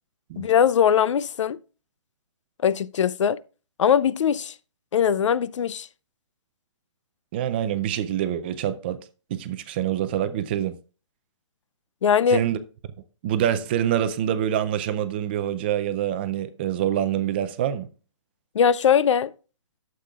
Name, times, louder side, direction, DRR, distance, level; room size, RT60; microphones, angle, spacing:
voice 1, 0.4-1.6 2.6-3.4 3.8-4.5 4.9-5.9 12.0-12.4 18.5-19.3, left 8 dB, 75° left, 0.5 m, -20 dB
voice 2, 7.3-9.0 9.3-10.7 12.3-12.6 13.2-17.9, right 10 dB, 20° right, 0.4 m, -25 dB
12.0 x 7.6 x 2.3 m
hypercardioid pair, 165°, 16 cm